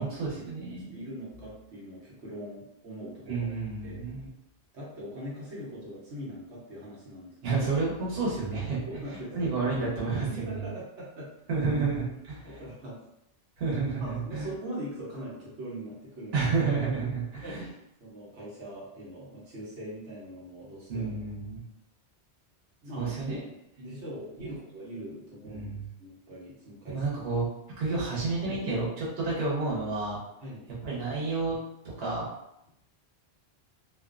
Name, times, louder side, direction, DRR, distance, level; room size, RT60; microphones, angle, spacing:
voice 1, 0.0-1.0 3.3-4.3 7.4-8.8 9.3-10.5 11.5-12.6 13.6-14.5 16.3-17.6 20.9-21.6 23.0-23.4 24.4-24.6 25.5-25.8 26.9-27.5 27.8-30.2 30.8-31.6 32.0-32.3, right 4 dB, 65° right, -6 dB, 1.1 m, -30 dB
voice 2, 0.9-3.5 3.8-4.0 4.7-7.6 8.9-9.5 10.3-11.3 12.4-13.0 14.0-16.5 17.4-21.2 22.8-23.5 23.8-25.7 26.0-27.0 30.4-30.7, equal, 90° right, -6 dB, 1.2 m, -41 dB
2.5 x 2.4 x 2.4 m, 0.81 s
omnidirectional pair, 1.1 m